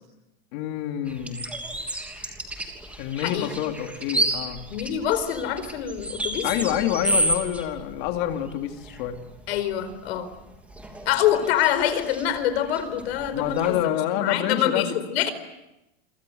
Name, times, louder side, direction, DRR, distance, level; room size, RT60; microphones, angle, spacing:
voice 1, 0.5-1.5 3.0-4.6 6.4-9.2 13.3-15.0, left 11 dB, 50° left, 4 dB, 3.1 m, -27 dB
sound 1, 1.1-13.8, right 1 dB, 5° right, 3.1 m, -32 dB
voice 2, 4.7-6.9 9.5-10.3 11.1-13.8 14.1-15.3, left 10 dB, 75° left, 12 dB, 4.6 m, -25 dB
28.5 x 26.0 x 8.0 m, 0.95 s
supercardioid pair, 175°, 31 cm